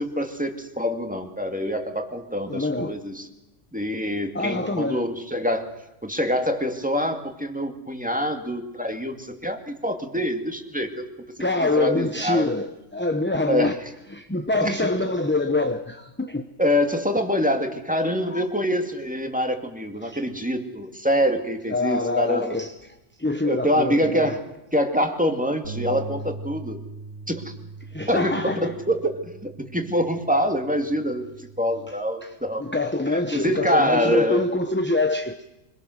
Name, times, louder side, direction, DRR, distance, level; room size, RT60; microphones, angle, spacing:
voice 1, 0.0-3.3 3.7-5.7 6.0-11.0 11.8-12.5 13.5-13.7 14.6-14.9 16.6-22.5 23.4-24.4 24.7-26.8 27.3-27.5 28.1-31.2 31.6-32.6 33.3-34.4, equal, 5° right, 5 dB, 2.3 m, -25 dB
voice 2, 2.5-3.0 4.3-5.1 11.4-13.7 14.1-16.5 18.3-18.4 20.0-20.2 21.7-24.4 27.8-28.7 31.9-35.4, left 2 dB, 10° left, 6 dB, 0.9 m, -25 dB
Bass guitar, 25.6-31.9, right 3 dB, 75° right, 2.9 m, -40 dB
25.0 x 22.5 x 6.5 m, 0.94 s
omnidirectional pair, 1.4 m